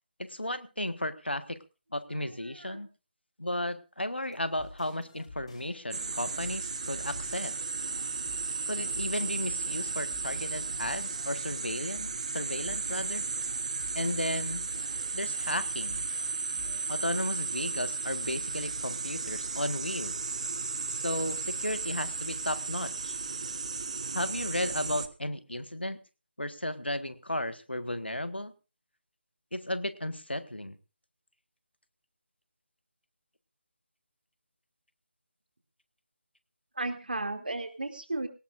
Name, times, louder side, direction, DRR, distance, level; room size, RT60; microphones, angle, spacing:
voice 1, 0.2-1.6 1.9-2.9 3.4-7.6 8.7-13.3 13.9-14.7 15.1-16.1 16.9-20.2 20.9-23.2 24.1-26.0 26.4-28.5 29.5-30.8, left 1 dB, 80° left, 12 dB, 1.5 m, -34 dB
sound 1, 4.3-17.2, left 2 dB, 40° left, 6.2 m, -51 dB
sound 2, 5.9-25.1, right 4 dB, 35° right, 1.0 m, -34 dB
voice 2, 36.7-38.3, right 2 dB, 60° right, 6 dB, 2.7 m, -34 dB
20.0 x 18.0 x 2.6 m, 0.30 s
figure-of-eight pair, 155°, 6 cm